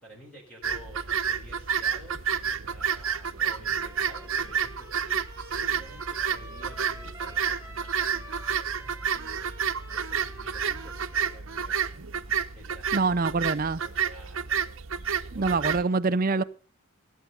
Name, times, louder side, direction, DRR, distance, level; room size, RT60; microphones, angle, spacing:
voice 1, 0.0-2.2 2.7-9.5 9.9-11.8 12.5-13.4 14.1-14.6 14.9-15.8, equal, 5° left, 4.3 m, -50 dB
sound 1, 0.6-15.8, right 7 dB, 60° right, 0.9 m, -30 dB
Trumpet, 3.8-11.4, equal, 15° right, 4.8 m, -48 dB
voice 2, 12.9-13.8 15.3-16.4, right 3 dB, 40° right, 0.6 m, -25 dB
18.0 x 8.3 x 5.4 m
head